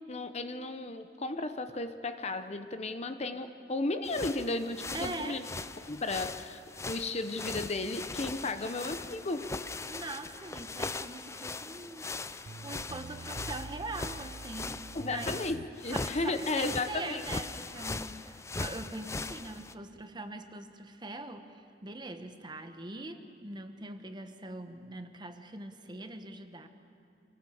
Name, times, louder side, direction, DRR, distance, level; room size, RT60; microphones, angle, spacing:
voice 1, 0.1-5.5 5.9-6.6 6.9-9.5 14.9-17.2, left 2 dB, 35° left, 9 dB, 0.9 m, -34 dB
sound 1, 4.0-19.7, left 3 dB, 15° left, 0.4 m, -40 dB
voice 2, 4.9-5.4 9.9-15.4 15.9-26.7, right 2 dB, 25° right, 7 dB, 1.1 m, -42 dB
sound 2, 12.4-15.7, right 3 dB, 90° right, 0.7 m, -46 dB
26.0 x 18.5 x 7.1 m, 2.4 s
head